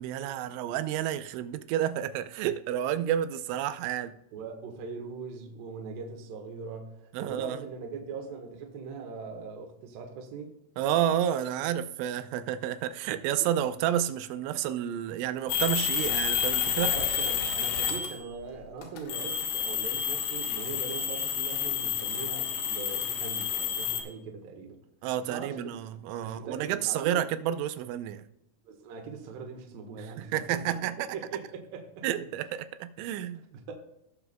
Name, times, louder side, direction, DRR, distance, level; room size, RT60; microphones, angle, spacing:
voice 1, 0.0-4.1 7.1-7.6 10.8-16.9 25.0-28.3 30.0-31.1 32.0-33.4, right 11 dB, 90° right, 3.1 m, -30 dB
voice 2, 4.3-10.6 13.4-13.5 16.7-24.8 25.3-25.7 26.2-27.3 28.6-30.8 31.1-32.1 33.5-33.7, right 5 dB, 65° right, 2.5 m, -41 dB
sound 1, 15.5-18.3 18.8-24.0, left 8 dB, 70° left, 3.4 m, -30 dB
18.0 x 6.9 x 2.2 m
omnidirectional pair, 5.4 m